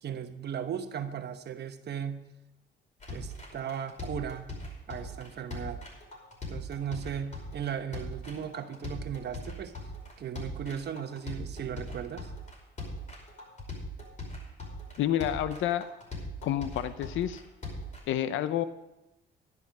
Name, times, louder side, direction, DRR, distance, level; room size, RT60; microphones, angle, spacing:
voice 1, 0.0-2.2 3.1-4.5 4.9-5.8 6.5-9.7 10.2-12.3, right 8 dB, 55° right, 8 dB, 1.1 m, -37 dB
sound 1, 3.0-18.0, left 1 dB, 40° left, 5.3 m, -40 dB
voice 2, 15.0-15.9 16.4-17.4 18.1-18.6, left 11 dB, 80° left, 13 dB, 0.6 m, -29 dB
11.0 x 11.0 x 5.2 m, 0.95 s
cardioid pair, 90°, 20 cm